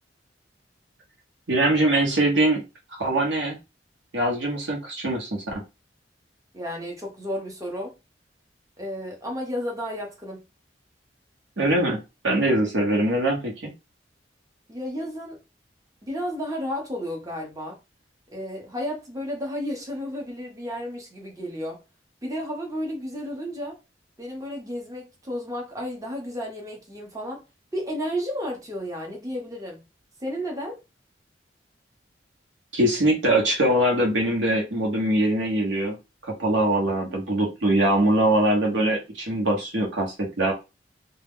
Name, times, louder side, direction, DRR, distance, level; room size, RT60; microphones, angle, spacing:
voice 1, 1.5-2.6 3.0-3.6 4.1-5.5 11.6-13.7 32.7-36.0 36.2-40.5, right 1 dB, 85° right, 1.0 m, -22 dB
voice 2, 6.5-7.9 8.8-10.4 14.7-15.4 16.0-17.8 18.3-21.8 22.2-23.8 24.2-27.4 27.7-29.8 30.2-30.8, equal, 20° right, 0.8 m, -32 dB
2.3 x 2.1 x 3.5 m
head